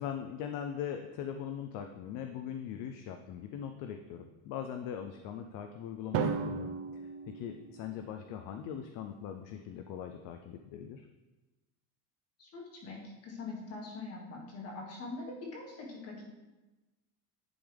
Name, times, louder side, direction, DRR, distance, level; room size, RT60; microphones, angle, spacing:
voice 1, 0.0-11.1, left 8 dB, 55° left, 6 dB, 0.5 m, -41 dB
Drum, 6.1-8.2, right 6 dB, 40° right, 0.4 m, -35 dB
voice 2, 12.4-16.3, left 3 dB, 40° left, -2 dB, 1.7 m, -43 dB
10.0 x 3.7 x 3.4 m, 1.1 s
cardioid pair, 155°, 39 cm